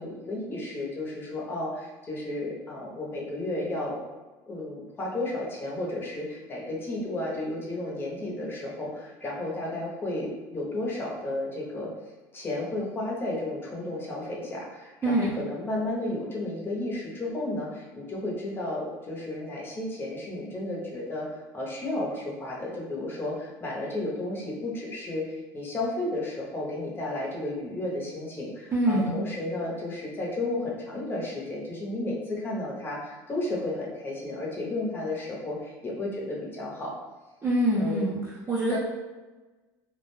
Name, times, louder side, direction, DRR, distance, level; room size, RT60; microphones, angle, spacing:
voice 1, 0.0-4.0 4.5-11.9 12.3-36.9 37.8-38.1 38.7-38.8, left 2 dB, 25° left, -3 dB, 0.7 m, -33 dB
voice 2, 15.0-15.3 28.7-29.2 37.4-38.8, right 1 dB, 25° right, -7 dB, 0.5 m, -25 dB
2.3 x 2.1 x 3.1 m, 1.2 s
supercardioid pair, 125°, 9 cm